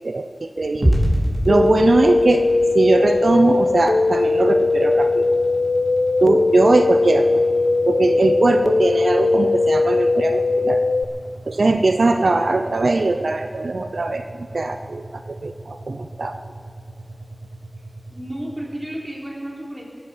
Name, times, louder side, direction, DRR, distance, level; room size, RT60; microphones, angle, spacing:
voice 1, 0.0-1.0 1.4-5.3 6.2-7.4 7.9-10.8 11.5-16.4, right 2 dB, 80° right, 7 dB, 0.6 m, -20 dB
sound 1, 0.8-19.0, equal, ahead, 5.0 m, -31 dB
sound 2, 1.5-11.0, left 3 dB, 80° left, 0.5 m, -19 dB
voice 2, 18.1-19.9, right 1 dB, 20° right, -2 dB, 3.8 m, -32 dB
18.0 x 10.0 x 7.2 m, 2.3 s
wide cardioid pair, 40°, 0 cm